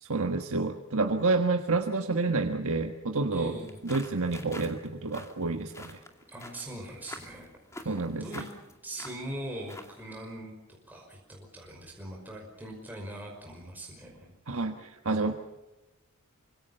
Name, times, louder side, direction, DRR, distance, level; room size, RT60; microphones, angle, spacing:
voice 1, 0.0-3.6 3.8-6.0 7.8-8.3 14.5-15.3, right 3 dB, 70° right, 4 dB, 1.5 m, -29 dB
voice 2, 3.3-3.8 6.3-7.5 7.8-8.5 8.8-14.3, right 1 dB, 10° right, -1 dB, 5.4 m, -41 dB
sound 1, 3.6-10.1, left 1 dB, 15° left, 2.3 m, -48 dB
26.5 x 25.5 x 5.6 m, 1.0 s
head